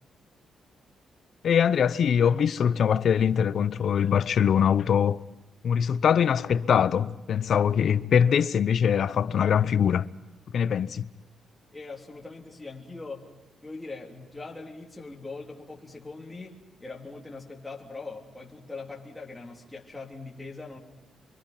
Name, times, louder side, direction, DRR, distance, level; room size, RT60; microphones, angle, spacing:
voice 1, 1.4-5.2 5.6-10.1 10.5-11.1, left 8 dB, 55° left, 0.7 m, -23 dB
voice 2, 11.7-13.3 13.6-20.8, left 3 dB, 10° left, 3.4 m, -41 dB
28.5 x 23.5 x 5.8 m
cardioid pair, 150°, 0 cm